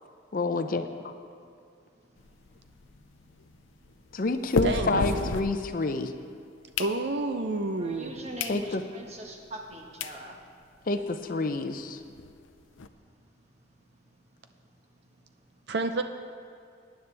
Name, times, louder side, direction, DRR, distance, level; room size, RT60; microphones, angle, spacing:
voice 1, 0.3-1.1 4.1-6.1 8.5-8.8 10.9-12.0, left 3 dB, 45° left, 8 dB, 0.5 m, -28 dB
sound 1, 2.2-6.1 6.5-7.5 8.0-8.1 8.4-8.6 9.0-9.1 9.7-9.8 10.0-10.2 10.6-10.7 10.9-11.0 11.3-11.4 11.7-12.9, left 4 dB, 90° left, 0.6 m, -34 dB
voice 2, 4.6-5.3 6.8-8.1 15.7-16.0, right 2 dB, 60° right, 7 dB, 0.5 m, -29 dB
voice 3, 7.8-10.4, right 1 dB, 35° right, 0 dB, 1.3 m, -41 dB
18.5 x 10.0 x 3.4 m, 2.3 s
head